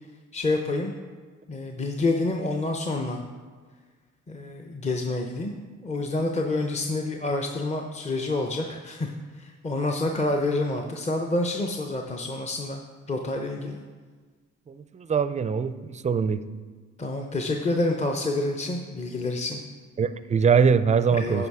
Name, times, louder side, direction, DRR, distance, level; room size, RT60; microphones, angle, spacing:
voice 1, 0.3-0.9 1.5-3.2 4.3-5.5 5.8-12.8 13.1-13.8 17.0-19.6 21.1-21.5, left 2 dB, 20° left, 3 dB, 0.7 m, -28 dB
voice 2, 14.7-16.4 20.0-21.5, right 6 dB, 25° right, 13 dB, 0.4 m, -23 dB
9.7 x 5.8 x 4.8 m, 1.5 s
cardioid pair, 90°, 30 cm